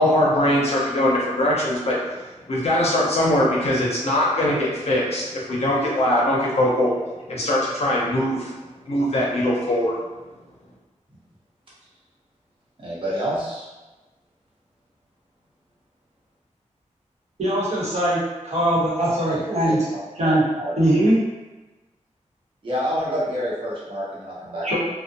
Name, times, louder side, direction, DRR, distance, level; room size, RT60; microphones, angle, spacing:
voice 1, 0.0-2.0 2.5-6.9 7.3-8.5 8.9-10.0, left 1 dB, 55° left, -5 dB, 0.6 m, -21 dB
voice 2, 12.8-13.7 19.3-19.8 20.2-20.7 22.6-24.8, equal, 45° right, -8 dB, 0.8 m, -28 dB
voice 3, 17.4-19.9 20.2-20.4 20.8-21.2 24.6-24.8, right 1 dB, 60° right, -8 dB, 1.0 m, -21 dB
2.5 x 2.1 x 2.6 m, 1.1 s
wide cardioid pair, 120°, 13 cm